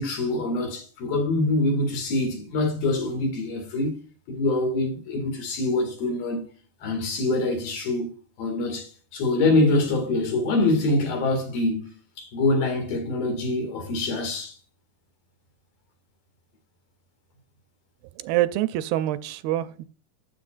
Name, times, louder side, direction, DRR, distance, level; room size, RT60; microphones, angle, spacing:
voice 1, 0.0-3.9 4.3-6.5 6.8-8.1 8.4-11.9 12.2-14.5, left 2 dB, 70° left, 3.9 m, -25 dB
voice 2, 18.2-19.9, right 14 dB, 85° right, 2.3 m, -25 dB
13.0 x 7.6 x 2.5 m
omnidirectional pair, 4.4 m